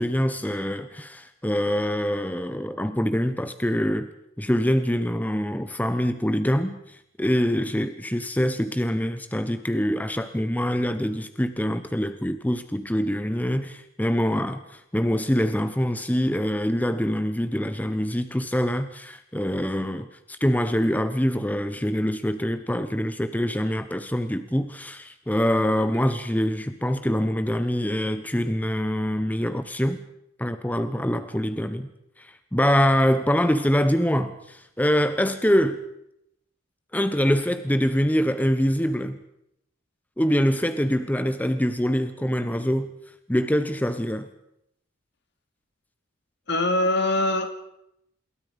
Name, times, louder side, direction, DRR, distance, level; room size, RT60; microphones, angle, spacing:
voice 1, 0.0-4.1 4.4-30.0 30.4-31.9 32.2-35.8 36.9-39.2 40.2-42.9 43.3-44.3, equal, 10° left, 10 dB, 0.9 m, -24 dB
voice 2, 46.5-47.5, left 1 dB, 60° left, 7 dB, 2.7 m, -22 dB
27.5 x 21.5 x 5.4 m, 0.80 s
head